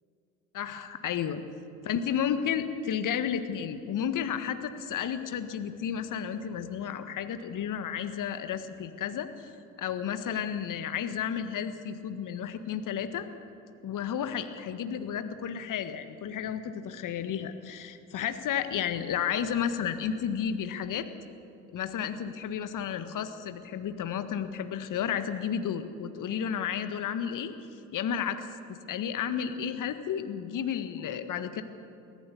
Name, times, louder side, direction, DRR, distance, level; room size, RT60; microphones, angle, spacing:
voice 1, 0.5-1.4 1.8-9.5 9.8-13.3 13.8-21.1 21.7-27.5 27.9-31.6, left 8 dB, 50° left, 10 dB, 1.6 m, -32 dB
24.0 x 17.5 x 7.0 m, 2.7 s
figure-of-eight pair, 50°, 40 cm